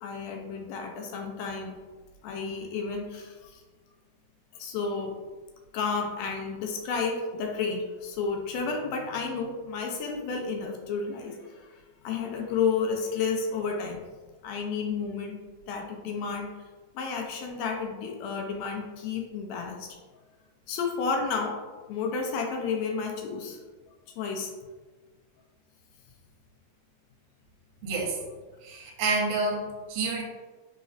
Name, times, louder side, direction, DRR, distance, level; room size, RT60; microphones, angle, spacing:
voice 1, 0.0-1.8 2.2-3.6 4.5-5.1 5.7-14.0 14.4-15.4 15.7-16.5 16.9-20.0 20.7-21.6 21.9-23.6 24.2-24.5, left 5 dB, 80° left, 2 dB, 1.6 m, -31 dB
voice 2, 27.8-28.2 28.6-30.2, right 3 dB, 70° right, -1 dB, 1.6 m, -29 dB
4.0 x 3.9 x 2.5 m, 1.3 s
omnidirectional pair, 3.4 m